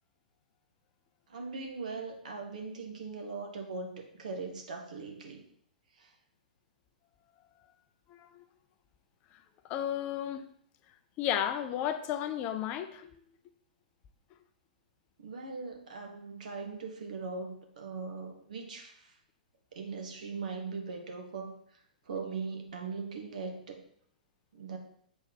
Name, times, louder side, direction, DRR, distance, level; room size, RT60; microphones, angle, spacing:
voice 1, 1.3-5.4 15.2-18.9 19.7-21.5 22.1-23.8 24.5-24.8, right 4 dB, 60° right, 4 dB, 1.6 m, -40 dB
voice 2, 8.1-8.4 9.6-10.5 11.2-13.2 19.8-19.9, left 10 dB, 30° left, 10 dB, 0.5 m, -33 dB
7.8 x 4.5 x 5.3 m, 0.65 s
figure-of-eight pair, 110°, 5 cm